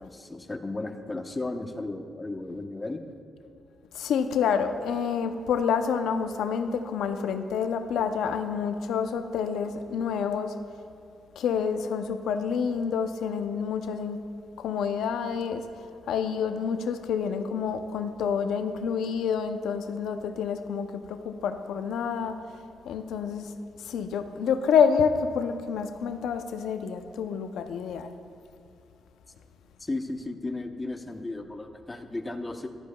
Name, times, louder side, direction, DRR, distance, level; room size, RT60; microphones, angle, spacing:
voice 1, 0.0-3.0 29.8-32.7, left 2 dB, 25° left, 5 dB, 0.9 m, -34 dB
voice 2, 3.9-10.5 11.4-14.2 14.6-15.6 16.1-22.4 22.9-23.5 23.8-28.1, left 6 dB, 85° left, 8 dB, 0.6 m, -28 dB
15.0 x 11.5 x 2.3 m, 2.6 s
cardioid pair, 75°, 0 cm